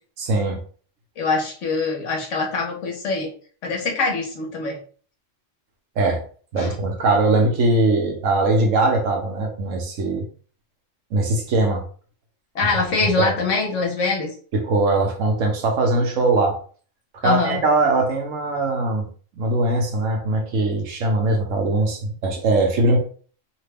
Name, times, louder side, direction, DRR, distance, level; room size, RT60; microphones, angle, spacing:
voice 1, 0.2-0.6 6.0-6.2 6.5-10.3 11.1-11.9 12.9-13.3 14.5-16.6 17.1-19.1 19.3-23.0, right 2 dB, 80° right, 2 dB, 1.2 m, -21 dB
voice 2, 1.2-3.3 3.6-4.8 6.6-6.8 12.5-14.3 17.2-17.6, left 4 dB, 70° left, 1 dB, 1.3 m, -24 dB
3.2 x 2.2 x 3.3 m, 0.42 s
omnidirectional pair, 1.3 m